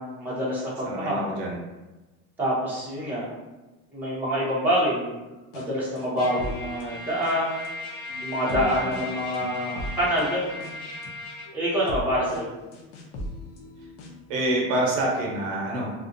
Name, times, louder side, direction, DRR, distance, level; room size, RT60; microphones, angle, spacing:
voice 1, 0.0-1.2 2.4-3.3 3.9-5.2 5.5-7.7 8.2-10.8 11.5-12.5, equal, 5° right, -9 dB, 0.6 m, -26 dB
voice 2, 0.8-1.6 8.4-8.9 14.3-15.9, right 1 dB, 85° right, -2 dB, 0.8 m, -27 dB
sound 1, 5.5-5.7 6.0-7.7 8.1-14.3, left 1 dB, 85° left, 0.6 m, -39 dB
Trumpet, 6.2-11.5, left 2 dB, 25° left, 1.0 m, -37 dB
2.4 x 2.1 x 2.5 m, 1.1 s
cardioid pair, 150°, 36 cm